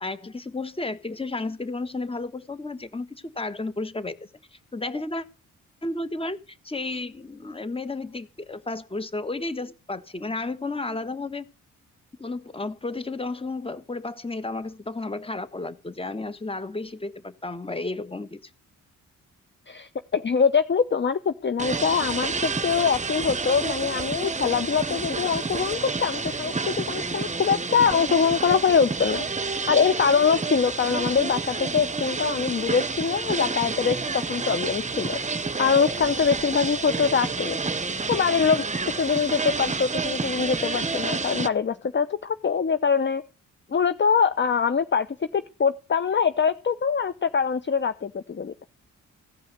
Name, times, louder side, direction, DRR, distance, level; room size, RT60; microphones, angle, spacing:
voice 1, 0.0-5.2 5.8-11.5 12.2-18.4, left 2 dB, 15° left, 1.4 m, -32 dB
voice 2, 19.7-29.3 29.7-35.2 35.6-37.6 38.1-38.6 38.9-43.2 43.7-45.1 45.3-48.6, left 6 dB, 35° left, 0.8 m, -23 dB
sound 1, 21.6-41.5, right 4 dB, 20° right, 0.9 m, -29 dB
16.5 x 5.5 x 9.4 m
cardioid pair, 80°, 32 cm